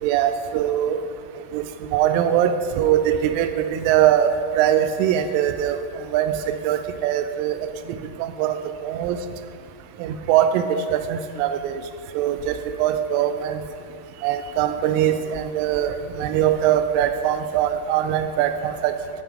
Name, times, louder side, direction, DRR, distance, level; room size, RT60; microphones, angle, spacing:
voice 1, 0.0-1.0 1.5-1.6 1.9-4.3 4.5-8.6 8.8-9.2 10.0-11.8 12.2-13.6 14.2-18.9, right 10 dB, 85° right, 8 dB, 3.1 m, -22 dB
9.3 x 6.2 x 4.9 m, 2.2 s
omnidirectional pair, 5.6 m